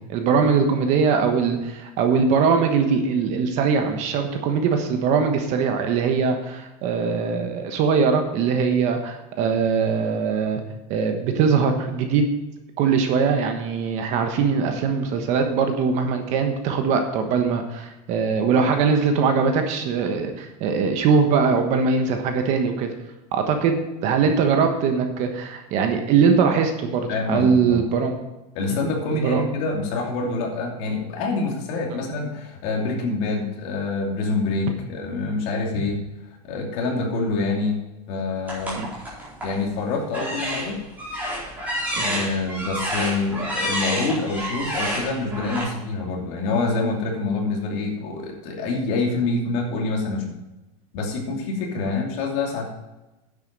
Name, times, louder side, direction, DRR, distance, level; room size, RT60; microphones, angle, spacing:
voice 1, 0.1-10.6 10.9-12.2 12.8-22.9 23.3-28.2 28.7-28.8 29.2-29.4 31.9-32.0 38.7-38.9 42.0-42.1, right 5 dB, 35° right, 5 dB, 1.3 m, -21 dB
voice 2, 27.1-27.8 28.5-36.0 36.4-38.9 39.4-40.8 41.9-50.3 50.9-52.7, left 3 dB, 45° left, 0 dB, 2.8 m, -26 dB
sound 1, 38.5-39.6 40.1-45.6, equal, 10° right, 4.3 m, -29 dB
10.0 x 8.2 x 5.3 m, 1.0 s
supercardioid pair, 175°, 20 cm